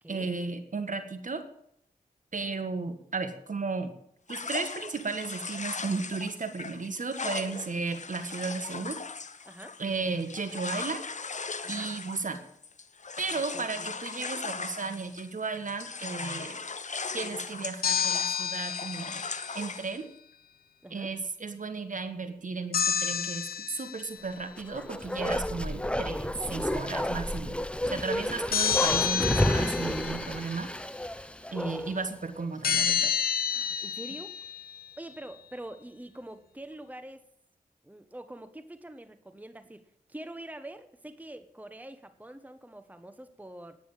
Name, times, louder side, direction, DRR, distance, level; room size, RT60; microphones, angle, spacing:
voice 1, 0.1-1.4 2.3-3.9 4.3-9.0 9.8-11.0 11.7-12.4 13.2-16.6 17.1-19.2 19.5-20.1 20.9-27.6 27.9-30.7 31.5-33.1, right 4 dB, 55° right, 8 dB, 1.8 m, -34 dB
sound 1, 4.3-15.4 15.7-20.0, left 4 dB, 50° left, 1.0 m, -39 dB
voice 2, 13.3-13.7 20.8-21.1 28.3-28.5 33.5-34.3 35.0-37.2 37.8-39.8 40.1-43.8, right 1 dB, 10° right, 10 dB, 1.2 m, -45 dB
sound 2, 17.8-19.5 22.7-24.2 28.5-30.4 32.6-34.8, left 7 dB, 70° left, 0.6 m, -29 dB
Bark, 24.5-32.1 32.4-32.5, left 1 dB, 5° left, 0.7 m, -31 dB
9.6 x 9.3 x 7.3 m, 0.72 s
cardioid pair, 45°, 16 cm